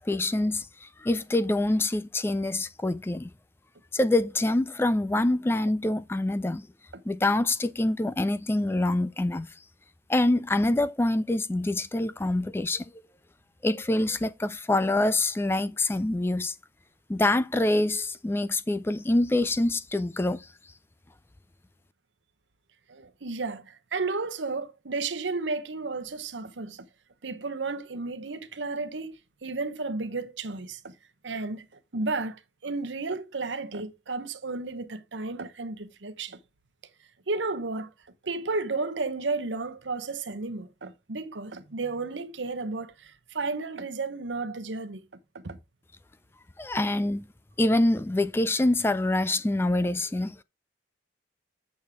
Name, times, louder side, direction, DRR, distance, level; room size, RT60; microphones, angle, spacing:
voice 1, 0.0-3.3 3.9-6.7 7.1-9.5 10.1-12.9 13.6-16.5 17.1-20.5 46.6-47.3 47.6-50.4, left 2 dB, 15° left, 0.3 m, -25 dB
voice 2, 22.9-26.9 27.2-29.2 29.4-30.9 31.2-31.7 31.9-36.4 37.3-37.9 38.2-45.0 45.4-45.6, right 3 dB, 80° right, 1.0 m, -33 dB
8.5 x 6.3 x 3.5 m
head